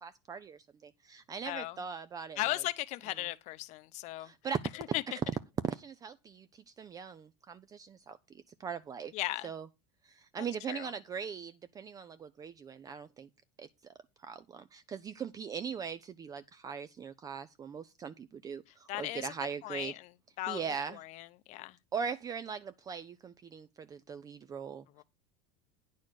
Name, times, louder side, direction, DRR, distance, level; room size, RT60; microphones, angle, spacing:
voice 1, 0.0-2.4 4.2-4.6 5.7-6.5 6.8-8.2 8.6-9.1 9.4-9.6 10.0-13.3 13.6-13.9 14.2-19.9 20.5-21.0 21.9-24.8, right 6 dB, 25° right, 0.5 m, -40 dB
voice 2, 1.4-1.8 2.4-4.3 4.7-5.0 9.1-9.5 10.4-10.9 18.7-19.3 19.6-20.6 20.9-21.8 25.0-25.1, left 17 dB, 50° left, 0.8 m, -37 dB
9.7 x 4.2 x 6.3 m
supercardioid pair, 125°, 15 cm